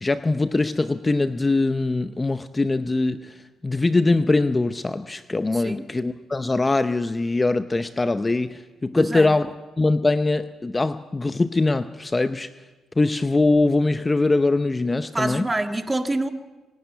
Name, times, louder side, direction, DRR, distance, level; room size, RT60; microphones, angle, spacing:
voice 1, 0.0-12.5 13.0-15.5, left 2 dB, 20° left, 11 dB, 0.6 m, -22 dB
voice 2, 5.5-5.9 9.0-9.3 15.1-16.3, right 2 dB, 15° right, 7 dB, 1.7 m, -26 dB
26.0 x 11.5 x 9.3 m, 1.2 s
cardioid pair, 90°, 0 cm